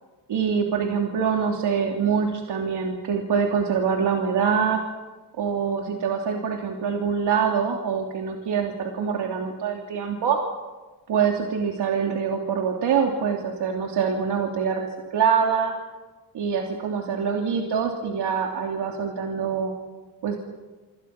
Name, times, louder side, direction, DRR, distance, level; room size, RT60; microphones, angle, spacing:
voice 1, 0.3-4.8 5.4-10.4 11.1-15.7 16.3-19.7 20.2-20.4, right 6 dB, 75° right, 0 dB, 3.2 m, -24 dB
28.5 x 26.5 x 6.0 m, 1.2 s
cardioid pair, 105°, 42 cm